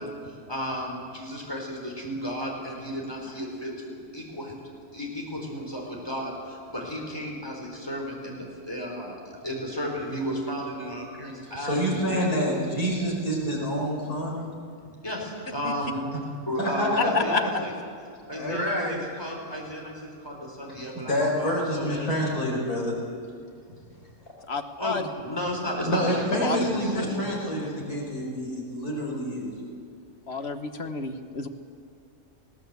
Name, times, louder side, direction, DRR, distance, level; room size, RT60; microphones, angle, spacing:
voice 1, 0.0-4.6 4.9-12.3 15.0-16.0 16.5-17.7 18.3-22.1 22.9-23.2 24.8-27.6, equal, 15° left, -1 dB, 4.2 m, -34 dB
voice 2, 11.6-14.4 16.6-17.1 18.3-19.0 20.9-22.9 25.8-29.5, equal, 80° left, -2 dB, 5.2 m, -27 dB
voice 3, 24.5-25.0 26.4-26.6 30.3-31.5, left 5 dB, 45° left, 8 dB, 1.2 m, -29 dB
20.0 x 17.0 x 8.2 m, 2.3 s
omnidirectional pair, 1.6 m